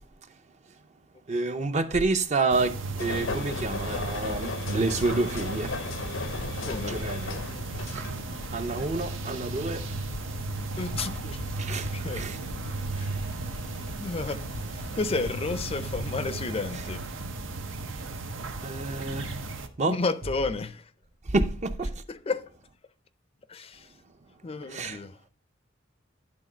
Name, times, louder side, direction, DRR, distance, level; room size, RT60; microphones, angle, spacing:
voice 1, 1.3-5.8 6.9-7.4 7.8-8.1 8.5-9.9 11.6-12.4 18.6-19.3 19.8-20.0 21.3-21.9 24.7-25.0, right 3 dB, 35° right, 0.6 m, -28 dB
sound 1, 2.5-19.7, right 3 dB, 85° right, 0.8 m, -35 dB
sound 2, 3.0-16.5, left 4 dB, 80° left, 0.7 m, -39 dB
voice 2, 6.6-7.1 10.8-11.4 11.9-12.3 13.0-13.1 14.0-17.0 19.9-20.9 22.1-22.5 23.5-23.9 24.4-25.2, left 3 dB, 30° left, 0.4 m, -32 dB
10.5 x 3.8 x 5.0 m
head